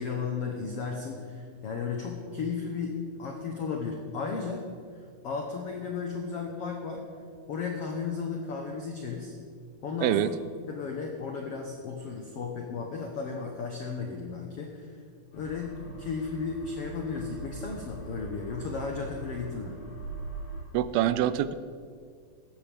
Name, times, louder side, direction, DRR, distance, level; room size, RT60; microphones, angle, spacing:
voice 1, 0.0-4.7 5.2-7.0 7.5-9.3 9.8-10.2 10.7-14.9 15.3-19.8, left 5 dB, 80° left, 1 dB, 1.3 m, -34 dB
sound 1, 15.3-20.6, right 3 dB, 55° left, 3.8 m, -42 dB
voice 2, 20.7-21.5, right 12 dB, 85° right, 14 dB, 2.4 m, -25 dB
17.5 x 14.0 x 3.5 m, 2.1 s
omnidirectional pair, 4.4 m